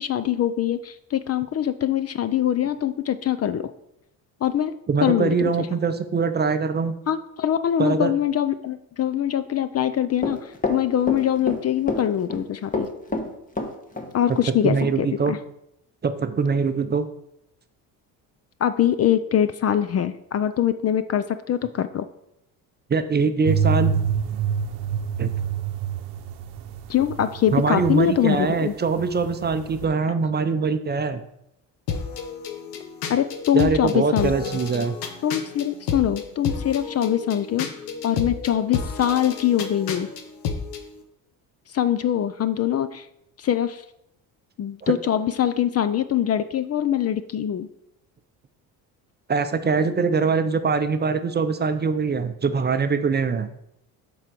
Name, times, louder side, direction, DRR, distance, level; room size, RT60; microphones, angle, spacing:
voice 1, 0.0-3.7 4.4-4.7 5.0-5.7 7.1-12.9 14.1-15.4 18.6-22.1 26.9-28.7 33.1-34.5 35.2-37.7 38.0-40.1 41.7-43.1 43.4-43.8 44.6-47.7, left 10 dB, 40° left, 13 dB, 0.5 m, -23 dB
voice 2, 4.9-6.9 7.8-8.1 14.3-15.3 16.0-17.1 22.9-24.0 25.2-25.3 27.5-31.2 33.5-35.0 44.8-44.9 49.3-53.5, right 5 dB, 25° right, 9 dB, 0.6 m, -23 dB
Run, 10.2-11.6 11.9-12.4 12.7-14.1 14.4-14.5 14.8-14.9, left 2 dB, 20° left, 1.2 m, -27 dB
sound 1, 23.4-28.5 28.7-29.8, right 7 dB, 75° right, 0.8 m, -27 dB
sound 2, 31.9-40.8, left 5 dB, 90° left, 1.0 m, -31 dB
7.8 x 3.8 x 6.0 m, 0.80 s
supercardioid pair, 90°, 40 cm